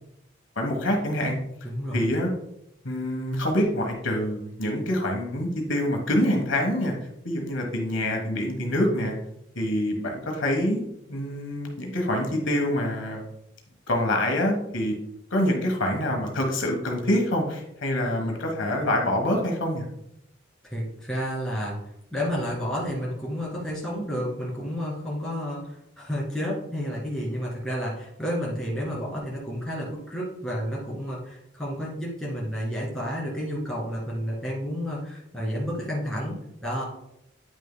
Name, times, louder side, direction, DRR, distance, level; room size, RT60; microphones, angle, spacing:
voice 1, 0.6-1.4 1.9-2.3 2.8-6.9 7.2-9.1 9.6-10.8 11.1-13.2 13.9-14.9 15.3-19.9, left 1 dB, 75° left, 2 dB, 1.2 m, -26 dB
voice 2, 1.6-2.1 20.6-21.8 22.1-36.8, equal, 5° left, -6 dB, 2.0 m, -31 dB
9.4 x 6.3 x 2.2 m, 0.79 s
head